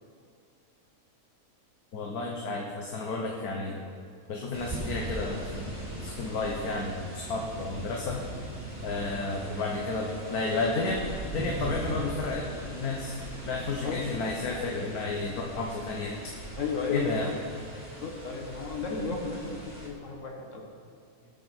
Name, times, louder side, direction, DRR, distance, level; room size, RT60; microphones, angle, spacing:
voice 1, 1.9-3.8 4.3-5.6 6.0-8.2 8.8-13.2 13.4-16.2 16.9-17.3, left 3 dB, 90° left, 0 dB, 1.6 m, -32 dB
sound 1, 4.5-19.9, right 1 dB, 10° right, 2.2 m, -40 dB
voice 2, 16.6-17.1 17.8-20.7, left 4 dB, 60° left, 1 dB, 1.8 m, -34 dB
19.0 x 6.6 x 4.5 m, 2.4 s
omnidirectional pair, 1.5 m